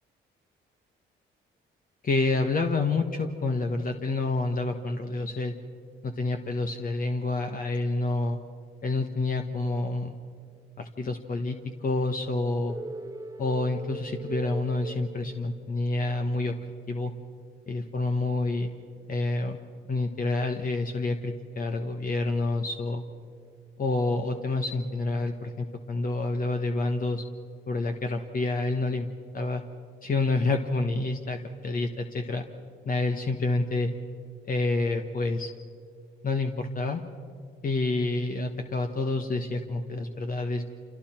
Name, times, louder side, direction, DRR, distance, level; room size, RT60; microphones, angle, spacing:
voice 1, 2.0-5.5 6.0-8.4 8.8-10.1 10.8-12.8 13.4-16.5 16.9-17.1 17.7-18.7 19.1-19.6 19.9-23.0 23.8-27.2 27.7-29.1 29.3-29.6 30.0-32.5 32.8-33.9 34.5-35.5 36.2-37.0 37.6-40.7, left 2 dB, 45° left, 4 dB, 1.4 m, -28 dB
sound 1, 12.7-15.9, right 3 dB, 15° right, 0.9 m, -40 dB
29.5 x 27.5 x 4.5 m, 2.2 s
cardioid pair, 90°, 20 cm